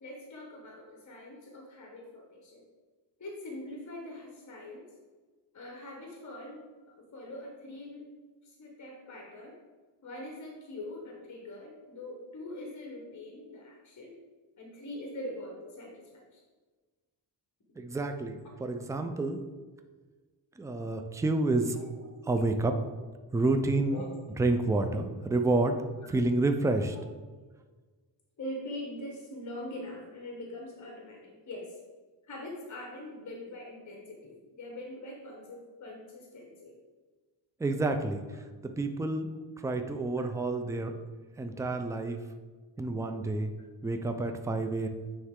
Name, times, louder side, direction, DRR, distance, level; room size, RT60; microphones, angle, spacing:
voice 1, 0.0-2.6 3.2-4.8 5.5-8.1 8.4-9.5 10.0-14.2 14.6-16.4 21.7-21.8 23.9-24.2 28.4-31.7 32.3-36.8, left 1 dB, 40° left, 0 dB, 1.2 m, -43 dB
voice 2, 17.8-19.4 20.6-21.7 22.3-22.7 23.3-24.0 24.4-25.8 26.1-26.9 37.6-38.2 38.6-39.3 39.6-40.9 41.4-42.2 42.8-43.5 43.8-44.9, right 2 dB, 5° right, 6 dB, 0.4 m, -29 dB
9.4 x 3.3 x 3.7 m, 1.4 s
cardioid pair, 100°, 45 cm